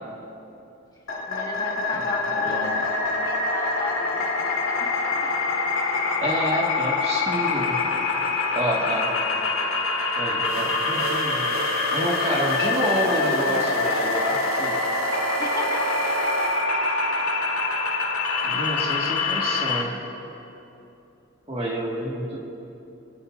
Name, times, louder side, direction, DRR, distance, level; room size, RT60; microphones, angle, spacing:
sound 1, 1.1-19.8, left 3 dB, 85° left, 2.0 m, -25 dB
voice 1, 1.1-4.3 4.8-4.9 5.2-5.3 15.4-16.5 17.1-17.4, left 3 dB, 20° left, -4 dB, 2.9 m, -36 dB
voice 2, 2.3-2.8 6.2-7.8 8.5-9.1 10.2-14.8 18.4-19.9 21.5-22.4, right 1 dB, 30° right, -3 dB, 1.9 m, -28 dB
sound 2, 10.4-16.7, right 5 dB, 90° right, 0.7 m, -32 dB
29.0 x 17.0 x 2.7 m, 2.9 s
head